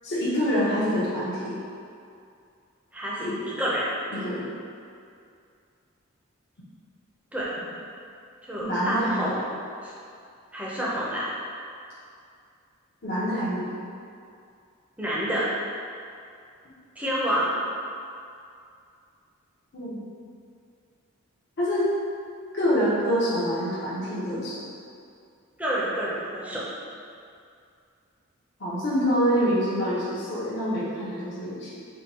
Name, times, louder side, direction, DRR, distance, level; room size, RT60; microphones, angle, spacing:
voice 1, 0.0-1.6 3.2-3.3 4.1-4.5 8.6-9.3 13.0-13.7 19.7-20.0 21.6-21.9 22.5-24.6 28.6-31.7, equal, 55° left, -9 dB, 0.8 m, -26 dB
voice 2, 2.9-3.3 3.6-3.9 7.3-7.5 8.4-9.4 9.8-9.9 10.5-11.3 15.0-15.5 17.0-17.6 25.6-26.6, equal, 5° right, -7 dB, 0.6 m, -28 dB
3.6 x 2.3 x 4.1 m, 2.4 s
head